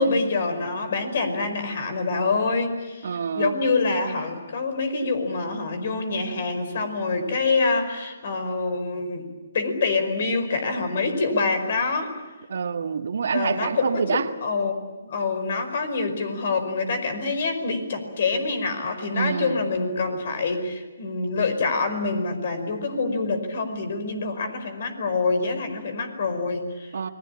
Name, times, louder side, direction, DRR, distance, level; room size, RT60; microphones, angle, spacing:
voice 1, 0.0-9.3 9.5-12.1 13.3-14.7 15.0-26.9, left 3 dB, 55° left, 10 dB, 5.1 m, -26 dB
voice 2, 3.0-3.5 12.5-14.2 19.1-19.6 26.9-27.1, right 6 dB, 65° right, 7 dB, 1.7 m, -26 dB
29.5 x 21.0 x 8.7 m, 1.2 s
hypercardioid pair, 150°, 0 cm